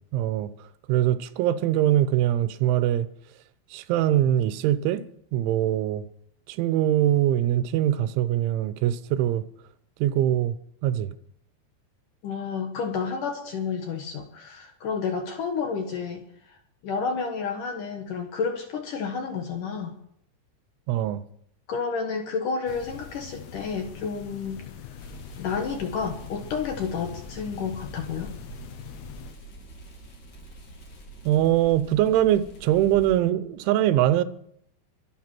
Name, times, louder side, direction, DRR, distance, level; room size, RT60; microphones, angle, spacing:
voice 1, 0.1-0.5 0.9-3.1 3.7-5.0 5.3-6.1 6.5-9.4 10.0-10.5 10.8-11.1 20.9-21.2 31.3-34.2, right 12 dB, 90° right, 3.2 m, -22 dB
voice 2, 12.2-16.2 16.8-19.9 21.7-24.6 25.4-28.3, left 5 dB, 65° left, 2.2 m, -30 dB
sound 1, 22.7-29.3, left 8 dB, 85° left, 3.7 m, -43 dB
sound 2, 25.0-33.1, right 2 dB, 45° left, 4.6 m, -45 dB
23.5 x 8.2 x 6.0 m
omnidirectional pair, 5.3 m